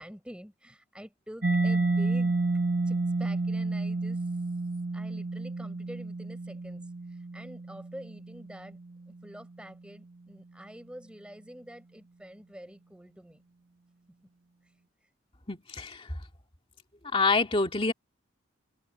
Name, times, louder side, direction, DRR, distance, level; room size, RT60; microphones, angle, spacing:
voice 1, 0.0-2.3 2.9-4.3 4.9-8.8 9.1-13.4, equal, 5° right, 6.8 m, -47 dB
Mallet percussion, 1.4-8.9, right 3 dB, 50° right, 1.8 m, -30 dB
voice 2, 15.5-16.1 17.1-17.9, left 3 dB, 25° left, 2.4 m, -26 dB
head